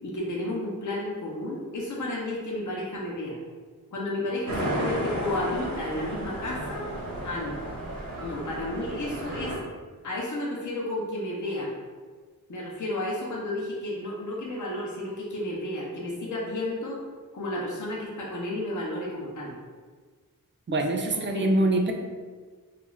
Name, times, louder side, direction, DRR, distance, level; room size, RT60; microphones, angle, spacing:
voice 1, 0.0-3.4 3.9-6.9 7.2-7.6 8.2-9.6 10.0-11.7 12.5-17.0 17.3-19.5 20.7-20.8 21.1-21.7, left 1 dB, 55° left, -4 dB, 0.7 m, -32 dB
sound 1, 4.5-9.6, right 1 dB, 70° right, 0.7 m, -33 dB
voice 2, 20.7-21.9, right 1 dB, 35° right, 3 dB, 0.4 m, -24 dB
2.4 x 2.3 x 3.0 m, 1.5 s
wide cardioid pair, 55°, 35 cm